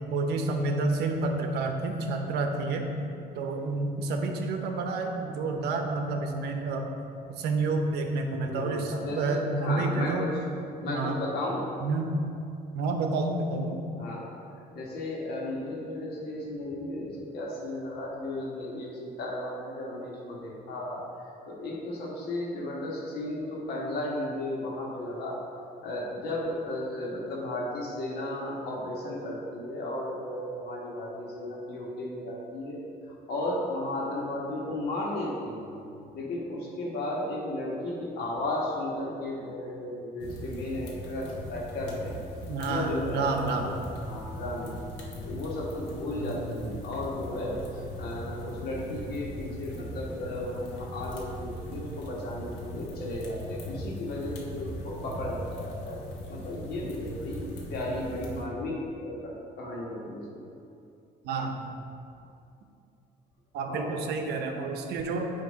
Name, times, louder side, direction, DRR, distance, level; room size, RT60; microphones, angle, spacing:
voice 1, 0.1-2.8 3.3-6.9 7.4-10.3 10.9-11.2 11.8-12.1 12.7-13.8 42.5-43.7 46.2-46.4 61.2-61.6 63.5-65.3, right 3 dB, 75° right, 4 dB, 0.7 m, -29 dB
voice 2, 8.5-10.3 10.8-11.6 14.0-14.3 14.7-21.0 21.5-25.4 25.8-32.8 33.3-35.7 36.1-42.2 42.6-43.7 44.0-44.9 45.2-56.0 56.3-60.2 63.7-63.9, left 1 dB, 70° left, -3 dB, 1.4 m, -34 dB
sound 1, 40.2-58.4, equal, 90° left, 1.0 m, -40 dB
8.1 x 2.9 x 5.0 m, 2.6 s
cardioid pair, 110°, 17 cm